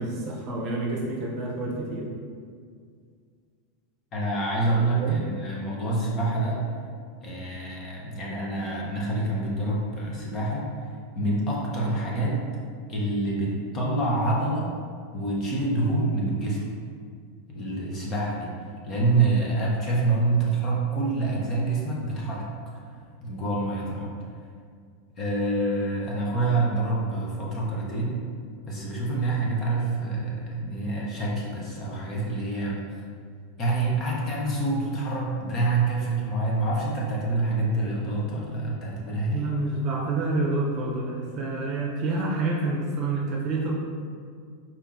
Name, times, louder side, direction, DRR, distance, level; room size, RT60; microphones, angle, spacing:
voice 1, 0.0-2.1 5.0-5.2 39.3-43.8, right 2 dB, 40° right, -3 dB, 0.7 m, -28 dB
voice 2, 4.1-6.6 7.2-10.7 11.1-12.4 12.9-14.7 15.1-16.6 17.5-18.5 18.8-22.5 23.2-24.1 25.2-28.1 28.7-32.8 33.6-39.5, right 2 dB, 30° left, -4 dB, 0.8 m, -26 dB
4.3 x 2.7 x 3.6 m, 2.1 s
supercardioid pair, 155°, 0 cm